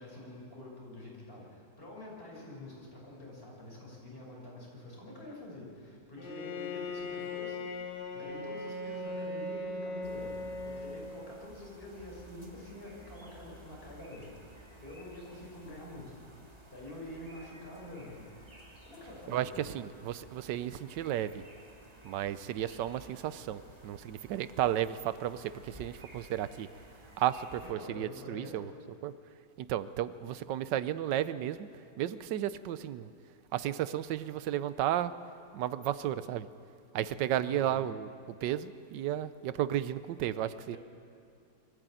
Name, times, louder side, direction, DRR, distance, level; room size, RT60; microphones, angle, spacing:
voice 1, 0.0-7.6 8.1-14.3 14.8-16.1 16.7-18.2 18.8-19.7 27.6-28.7 37.4-37.8 40.7-40.8, left 1 dB, 30° left, -4 dB, 6.4 m, -47 dB
Bowed string instrument, 6.2-11.6, left 2 dB, 70° left, 2.6 m, -39 dB
sound 1, 10.0-27.7, right 1 dB, 20° right, 2.4 m, -55 dB
voice 2, 19.3-21.4 22.0-26.7 27.2-28.7 29.0-29.1 29.6-31.7 32.0-33.1 33.5-35.1 35.5-36.5 36.9-40.8, right 11 dB, 90° right, 14 dB, 1.3 m, -33 dB
23.0 x 15.0 x 9.1 m, 2.4 s
omnidirectional pair, 1.8 m